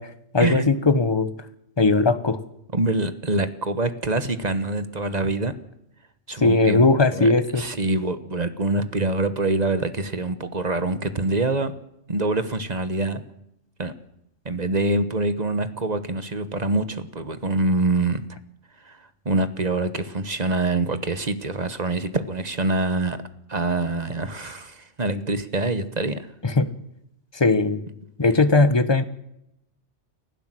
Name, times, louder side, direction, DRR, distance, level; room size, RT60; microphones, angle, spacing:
voice 1, 0.0-1.3 1.8-2.4 6.4-7.6 26.4-26.7 27.3-27.8 28.2-29.0, left 3 dB, 20° left, 12 dB, 1.2 m, -19 dB
voice 2, 2.7-5.5 6.3-6.9 7.1-11.7 12.1-13.2 13.8-13.9 14.4-18.2 18.8-23.2 23.5-26.3, right 2 dB, 35° right, 11 dB, 1.4 m, -25 dB
29.5 x 12.0 x 7.8 m, 0.81 s
omnidirectional pair, 1.2 m